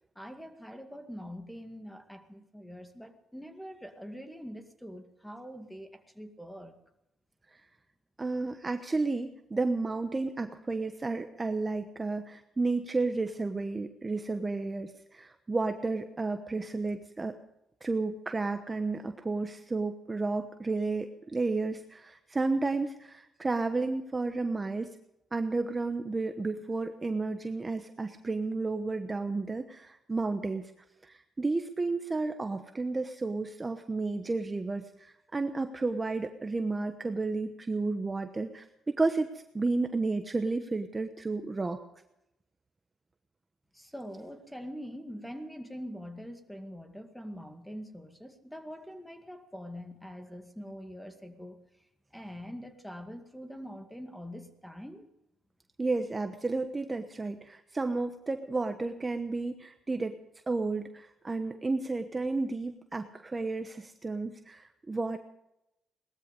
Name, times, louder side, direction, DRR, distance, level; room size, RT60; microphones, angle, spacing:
voice 1, 0.2-6.8 43.7-55.1, equal, 5° left, 6 dB, 2.1 m, -44 dB
voice 2, 8.2-17.4 17.8-24.9 25.3-30.7 31.0-41.8 55.8-60.1 60.5-65.2, right 3 dB, 25° right, 7 dB, 1.1 m, -32 dB
19.0 x 13.5 x 5.3 m, 0.85 s
cardioid pair, 90°, 0 cm